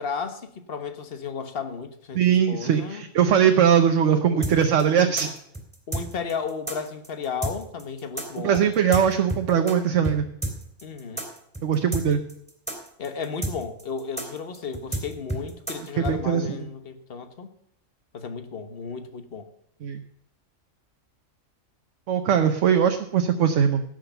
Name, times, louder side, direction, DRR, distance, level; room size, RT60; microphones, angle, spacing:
voice 1, 0.0-3.0 4.1-4.5 5.9-8.6 10.8-11.2 13.0-17.5 18.1-19.5, left 5 dB, 50° left, 9 dB, 1.4 m, -34 dB
voice 2, 2.1-5.3 8.4-10.2 11.6-12.2 16.0-16.5 19.8-20.0 22.1-23.8, right 8 dB, 70° right, 6 dB, 1.2 m, -21 dB
sound 1, 4.4-9.8 10.0-10.2 10.4-16.2, right 1 dB, 5° left, 3.3 m, -30 dB
16.5 x 6.5 x 6.9 m, 0.71 s
omnidirectional pair, 1.3 m